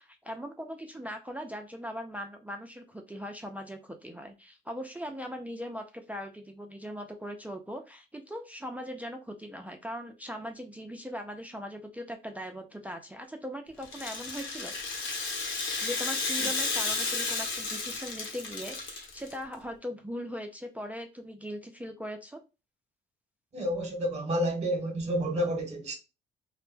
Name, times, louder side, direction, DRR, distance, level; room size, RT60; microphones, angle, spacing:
voice 1, 0.0-14.7 15.8-22.4, equal, 5° right, 0.3 m, -40 dB
Rattle (instrument), 13.8-19.3, left 3 dB, 75° left, 0.9 m, -32 dB
voice 2, 23.5-26.0, equal, 35° right, 0.9 m, -30 dB
2.1 x 2.0 x 3.1 m
cardioid pair, 90°, 20 cm